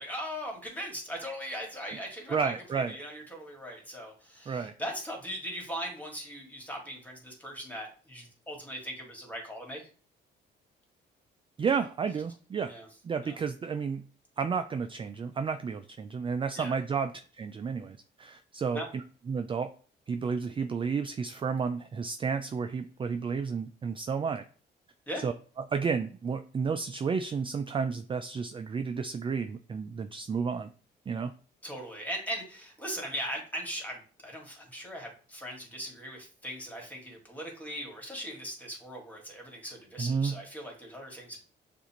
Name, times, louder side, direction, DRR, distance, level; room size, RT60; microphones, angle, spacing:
voice 1, 0.0-9.8 12.7-12.9 13.2-13.4 16.5-16.8 18.7-18.9 25.1-25.3 31.6-41.4, equal, 10° left, 0 dB, 1.9 m, -39 dB
voice 2, 2.3-3.0 4.5-4.7 11.6-12.7 13.0-14.0 14.4-17.1 17.4-19.0 19.3-19.7 20.1-24.4 25.2-25.3 25.7-30.7 31.1-31.3 40.0-40.3, right 5 dB, 25° right, 9 dB, 0.3 m, -31 dB
6.8 x 2.5 x 2.9 m, 0.40 s
cardioid pair, 90°, 20 cm